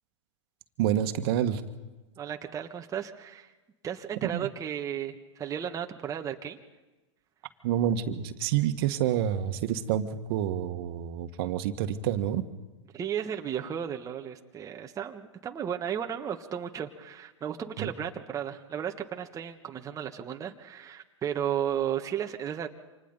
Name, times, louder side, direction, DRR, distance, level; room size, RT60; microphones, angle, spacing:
voice 1, 0.8-1.6 4.2-4.5 7.6-12.4 17.8-17.9, right 10 dB, 50° right, 8 dB, 1.7 m, -28 dB
voice 2, 2.2-3.5 3.8-6.6 12.9-22.7, right 9 dB, 20° right, 4 dB, 1.4 m, -34 dB
29.0 x 27.0 x 4.1 m, 1.2 s
hypercardioid pair, 105°, 16 cm